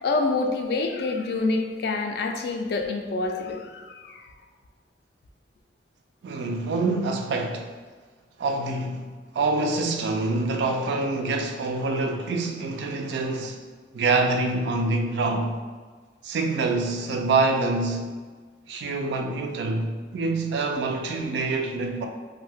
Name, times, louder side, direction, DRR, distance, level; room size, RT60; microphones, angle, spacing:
voice 1, 0.0-4.2, left 3 dB, 60° left, 0.3 m, -27 dB
voice 2, 6.2-7.7 8.4-13.6 13.9-15.6 16.2-18.1 18.7-22.1, right 3 dB, 65° right, 0.3 m, -26 dB
2.6 x 2.1 x 3.4 m
head